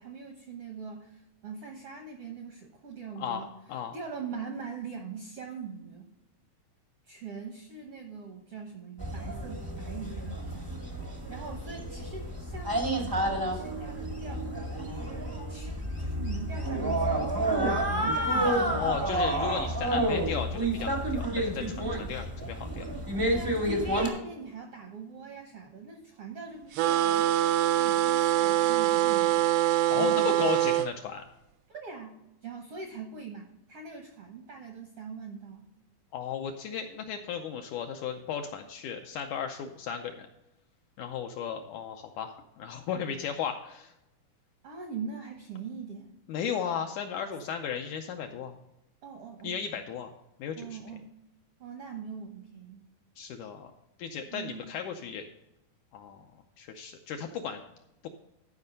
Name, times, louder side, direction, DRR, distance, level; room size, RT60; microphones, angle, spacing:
voice 1, 0.0-3.5 3.9-6.1 7.1-14.4 14.8-19.1 21.7-22.2 23.3-29.5 29.9-30.5 31.7-35.7 44.6-46.1 49.0-49.6 50.6-51.1 51.6-52.8 54.3-54.7, right 6 dB, 70° right, 2 dB, 1.4 m, -42 dB
voice 2, 3.2-4.0 18.4-22.9 29.9-31.2 36.1-40.3 41.0-43.9 46.3-48.6 49.4-50.1 50.4-50.8 53.2-53.7 54.0-55.3 55.9-56.3 56.6-57.6 58.0-58.1, left 8 dB, 80° left, 5 dB, 1.8 m, -35 dB
sound 1, 9.0-24.1, right 1 dB, 35° right, 0.3 m, -30 dB
sound 2, 26.8-30.9, right 14 dB, 90° right, 2.4 m, -24 dB
12.0 x 5.2 x 5.2 m, 0.91 s
omnidirectional pair, 4.1 m